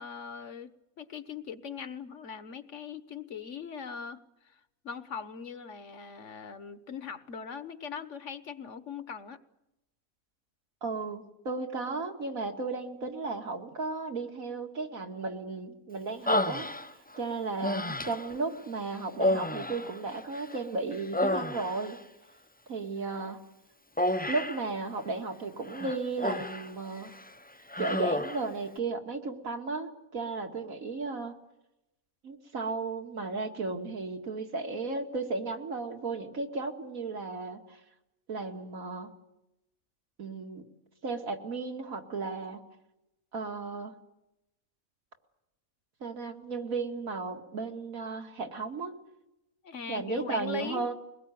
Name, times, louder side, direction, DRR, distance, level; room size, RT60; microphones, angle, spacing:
voice 1, 0.0-9.4 49.6-50.9, left 6 dB, 60° left, 12 dB, 1.5 m, -41 dB
voice 2, 10.8-16.7 17.2-22.0 22.7-23.4 24.3-27.1 27.8-31.3 32.2-37.8 38.3-39.1 40.2-40.6 41.0-42.6 43.3-43.9 46.0-48.9 49.9-50.9, right 3 dB, 80° right, 4 dB, 2.7 m, -34 dB
Human voice, 16.3-17.2 17.6-18.4 19.1-20.6 20.9-22.0 24.0-24.7 25.7-26.7 27.0-27.3 27.7-28.5, left 1 dB, 10° left, 0.5 m, -30 dB
23.0 x 20.0 x 9.4 m, 0.91 s
omnidirectional pair, 1.4 m